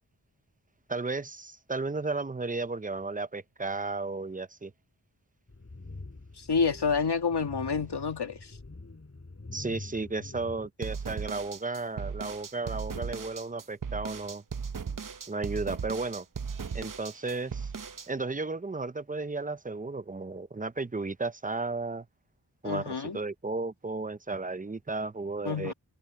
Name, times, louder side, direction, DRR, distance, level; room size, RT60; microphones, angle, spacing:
voice 1, 0.9-4.7 9.5-14.4 15.3-16.3 16.7-17.7 18.1-22.1 22.6-25.7, right 3 dB, 20° right, 0.7 m, -34 dB
sound 1, 5.5-10.7, left 3 dB, 35° left, 4.1 m, -45 dB
voice 2, 6.4-8.6 12.9-13.1 22.6-23.2 25.4-25.7, left 5 dB, 80° left, 2.5 m, -29 dB
sound 2, 10.8-18.1, right 6 dB, 50° right, 0.9 m, -37 dB
wide cardioid pair, 75°, 40 cm